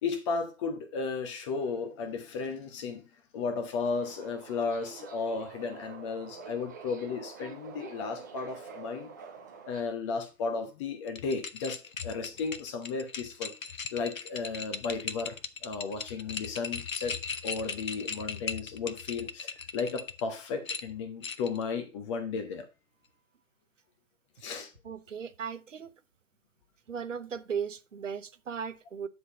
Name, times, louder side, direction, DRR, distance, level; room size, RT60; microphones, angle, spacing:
voice 1, 0.0-3.0 3.3-9.1 9.7-13.5 13.9-15.4 15.6-17.2 17.4-22.6 24.4-24.7, left 4 dB, 20° left, 0.9 m, -34 dB
Subway metro underground, 3.9-9.8, right 6 dB, 15° right, 0.5 m, -47 dB
sound 1, 11.1-20.2 20.7-21.6, left 5 dB, 75° left, 0.9 m, -38 dB
voice 2, 24.8-25.9 26.9-29.1, right 7 dB, 65° right, 0.8 m, -37 dB
9.5 x 3.9 x 5.0 m
figure-of-eight pair, 125°, 41 cm